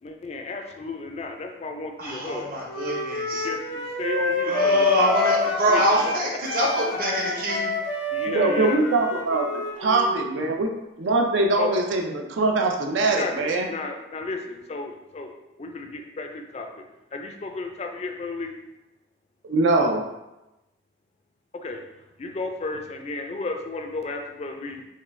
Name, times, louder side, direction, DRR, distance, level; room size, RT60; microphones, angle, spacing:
voice 1, 0.0-2.7 3.3-5.3 5.7-6.1 8.1-8.8 11.6-11.7 13.1-18.5 21.5-24.9, left 3 dB, 35° left, 3 dB, 0.3 m, -33 dB
voice 2, 2.0-3.5 4.4-7.7, right 1 dB, 50° right, -3 dB, 0.8 m, -24 dB
Wind instrument woodwind instrument, 2.7-6.2 6.4-10.3, left 3 dB, 75° left, 0.7 m, -27 dB
voice 3, 8.3-10.7 11.0-13.7 19.4-20.0, right 2 dB, 80° right, 3 dB, 0.5 m, -22 dB
3.6 x 2.3 x 3.2 m, 0.95 s
head